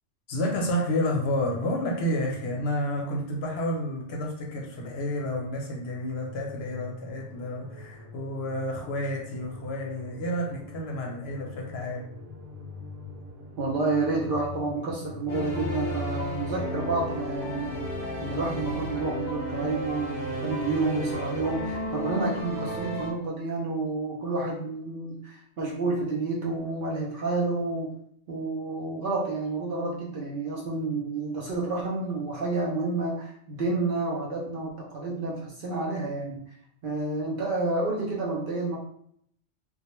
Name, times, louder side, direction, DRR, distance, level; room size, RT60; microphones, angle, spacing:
voice 1, 0.3-12.0, left 1 dB, 65° left, -1 dB, 0.7 m, -30 dB
sound 1, 6.1-21.8, left 2 dB, 85° right, 0.9 m, -43 dB
voice 2, 13.6-17.7 18.2-27.9 28.3-36.4 36.8-38.8, right 3 dB, 60° right, -3 dB, 0.6 m, -29 dB
sound 2, 15.3-23.1, equal, 20° left, 1.0 m, -33 dB
2.2 x 2.1 x 2.9 m, 0.68 s
omnidirectional pair, 1.2 m